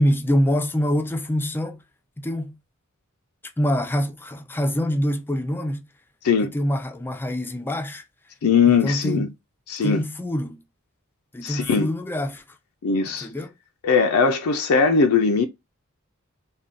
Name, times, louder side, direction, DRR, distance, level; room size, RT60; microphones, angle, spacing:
voice 1, 0.0-1.8 2.2-2.6 3.6-5.8 6.4-8.0 8.8-9.3 9.8-10.6 11.3-12.4 13.2-13.5, equal, 10° left, 0.3 m, -25 dB
voice 2, 8.4-9.3 9.7-10.0 11.4-11.9 12.8-13.3 13.8-15.5, left 5 dB, 80° left, 0.4 m, -20 dB
3.5 x 2.2 x 2.5 m
head